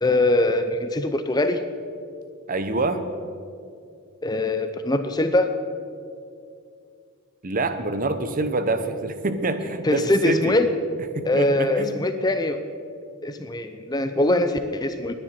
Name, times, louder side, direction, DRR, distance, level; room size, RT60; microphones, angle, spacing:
voice 1, 0.0-1.6 4.2-5.5 9.8-10.7 11.2-12.6 13.2-15.1, left 2 dB, 20° left, 9 dB, 0.5 m, -22 dB
voice 2, 2.5-3.0 7.4-10.6 11.1-12.0, right 2 dB, 40° right, 9 dB, 0.8 m, -26 dB
19.0 x 10.0 x 4.3 m, 2.4 s
head